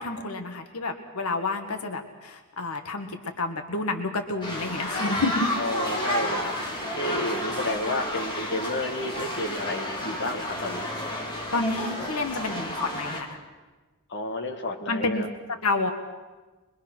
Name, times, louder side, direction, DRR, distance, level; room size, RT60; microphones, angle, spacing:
voice 1, 0.0-5.5 11.5-13.3 14.9-15.9, left 3 dB, 85° left, 5 dB, 1.6 m, -29 dB
sound 1, 4.4-13.2, left 1 dB, 20° left, 3.0 m, -31 dB
voice 2, 5.6-6.5 6.9-10.9 14.1-15.3, left 2 dB, 55° left, 2 dB, 1.8 m, -31 dB
23.5 x 22.0 x 6.1 m, 1.3 s
head